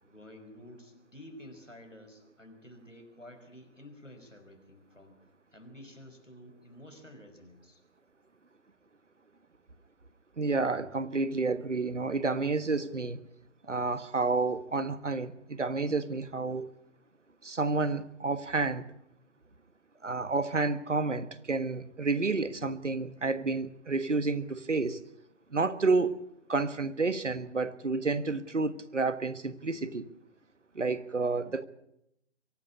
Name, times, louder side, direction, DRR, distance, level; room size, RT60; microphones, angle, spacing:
voice 1, 0.0-5.2 5.5-7.8, left 1 dB, 90° left, 5.3 m, -51 dB
voice 2, 10.4-13.2 13.7-16.7 17.4-18.9 20.0-25.0 25.5-26.2 26.5-30.1 30.7-31.6, right 3 dB, 75° right, 1.5 m, -30 dB
23.5 x 12.0 x 10.0 m
figure-of-eight pair, 135°, 36 cm